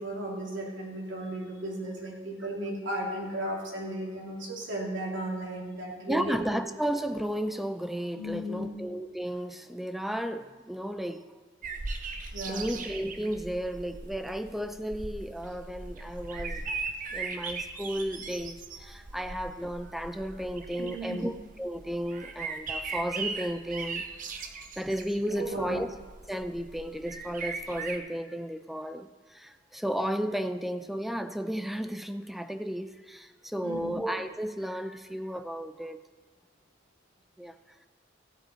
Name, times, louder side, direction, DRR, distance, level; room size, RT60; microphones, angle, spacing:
voice 1, 0.0-6.4 8.1-8.8 12.3-12.7 20.8-21.3 25.3-25.7 33.6-34.0, right 1 dB, 75° right, -3 dB, 3.3 m, -35 dB
voice 2, 6.1-11.2 12.2-16.6 17.1-24.1 24.5-25.9 26.3-36.0 37.4-37.5, equal, ahead, 9 dB, 0.5 m, -33 dB
sound 1, 11.6-28.0, right 4 dB, 45° right, 0.8 m, -39 dB
15.5 x 8.3 x 4.4 m, 1.3 s
head